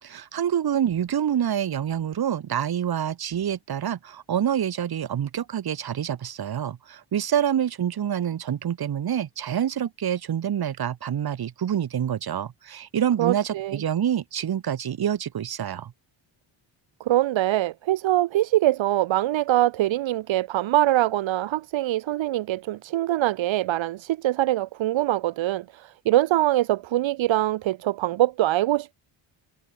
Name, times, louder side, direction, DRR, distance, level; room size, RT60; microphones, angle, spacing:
voice 1, 0.0-15.9, right 9 dB, 45° right, 4.2 m, -27 dB
voice 2, 13.2-13.8 17.0-28.9, right 14 dB, 65° right, 1.2 m, -23 dB
cardioid pair, 175°, 50 cm